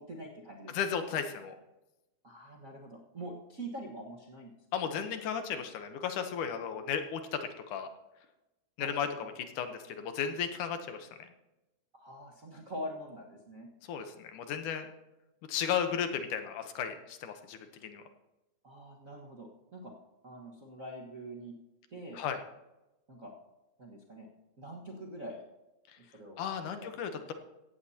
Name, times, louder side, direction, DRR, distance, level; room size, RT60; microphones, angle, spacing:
voice 1, 0.0-0.7 2.2-4.5 8.8-9.3 11.9-13.7 18.6-19.9 20.2-21.5 21.9-22.2 23.1-23.3 23.8-24.3 24.6-25.4 26.0-26.4 26.7-27.0, right 1 dB, 40° right, -3 dB, 1.1 m, -44 dB
voice 2, 0.7-1.6 4.7-7.9 8.8-11.1 13.9-14.9 15.5-18.0 22.1-22.4 26.4-27.3, left 8 dB, 75° left, 7 dB, 2.4 m, -35 dB
16.5 x 15.5 x 2.9 m, 0.98 s
omnidirectional pair, 3.7 m